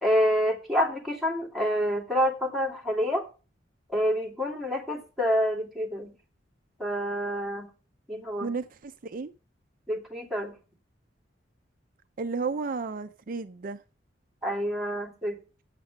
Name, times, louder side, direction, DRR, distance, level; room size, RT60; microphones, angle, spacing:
voice 1, 0.0-3.2 3.9-6.1 6.8-7.7 8.1-8.5 9.9-10.5 14.4-15.4, equal, ahead, 2.6 m, -27 dB
voice 2, 8.4-9.3 12.2-13.8, right 4 dB, 50° right, 0.5 m, -33 dB
8.1 x 7.7 x 6.6 m
head